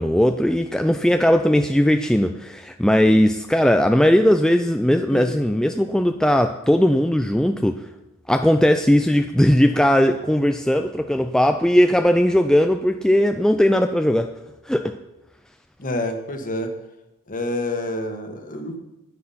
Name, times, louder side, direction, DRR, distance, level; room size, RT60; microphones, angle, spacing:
voice 1, 0.0-7.8 8.3-14.3 14.7-14.9, equal, 5° left, 6 dB, 0.3 m, -18 dB
voice 2, 15.8-16.7 17.3-18.8, left 1 dB, 35° left, 6 dB, 1.4 m, -28 dB
9.9 x 9.4 x 5.7 m, 0.95 s
head